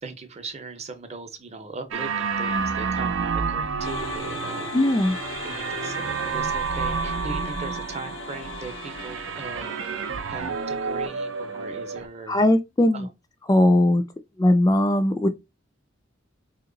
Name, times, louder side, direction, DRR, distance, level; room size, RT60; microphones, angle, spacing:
voice 1, 0.0-4.7 5.4-9.8 10.3-12.4 12.9-13.1, right 3 dB, 35° right, 0.7 m, -39 dB
sound 1, 1.9-12.1, right 5 dB, 85° right, 0.5 m, -29 dB
sound 2, 3.8-12.1, left 5 dB, 85° left, 0.6 m, -39 dB
voice 2, 4.7-5.2 12.3-13.1 13.5-14.0 14.4-15.3, left 1 dB, 20° left, 0.3 m, -19 dB
2.9 x 2.9 x 3.8 m
head